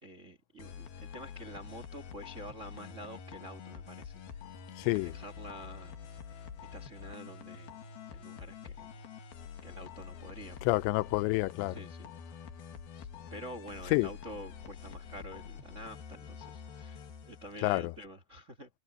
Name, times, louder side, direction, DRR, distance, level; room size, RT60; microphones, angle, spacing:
voice 1, 0.0-4.1 4.8-5.9 6.7-7.7 8.1-8.9 9.6-10.7 11.7-12.1 12.9-18.7, equal, 75° right, 0.7 m, -48 dB
sound 1, 0.6-18.0, left 7 dB, 65° left, 3.6 m, -47 dB
voice 2, 4.8-5.1 10.6-11.8 13.9-14.1 17.6-17.9, left 22 dB, 90° left, 2.9 m, -28 dB
omnidirectional pair, 5.0 m